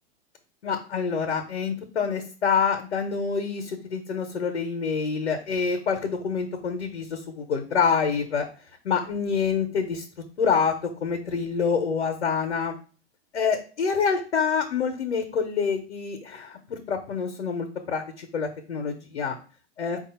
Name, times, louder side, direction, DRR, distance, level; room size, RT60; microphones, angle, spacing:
voice 1, 0.6-8.4 8.8-10.1 10.4-10.8 11.0-12.7 13.3-19.3 19.8-20.1, left 6 dB, 90° left, 5 dB, 0.8 m, -26 dB
4.8 x 2.4 x 4.2 m, 0.38 s
hypercardioid pair, 105°, 32 cm